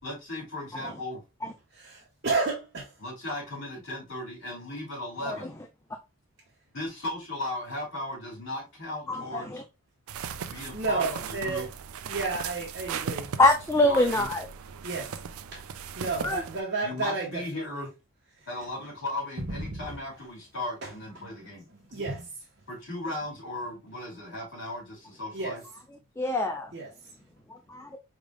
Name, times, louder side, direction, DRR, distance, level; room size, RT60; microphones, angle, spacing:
voice 1, 0.0-1.2 3.0-5.5 6.7-9.6 10.4-11.7 13.8-14.3 16.8-17.9 18.5-21.7 22.7-25.6, left 1 dB, 60° left, 2.6 m, -36 dB
voice 2, 1.9-2.9 10.7-11.6 12.1-13.3 14.8-15.1 15.5-15.6 15.9-17.3 17.5-17.8 19.4-19.8 21.2-21.3 21.9-22.3 25.3-25.5 26.7-26.9, right 3 dB, 50° right, 1.3 m, -31 dB
voice 3, 9.1-9.6 13.4-14.5 16.2-16.4 26.2-26.7 27.5-28.0, left 2 dB, 10° left, 0.3 m, -24 dB
sound 1, 10.1-16.6, right 7 dB, 85° right, 0.4 m, -37 dB
4.9 x 3.4 x 2.3 m
head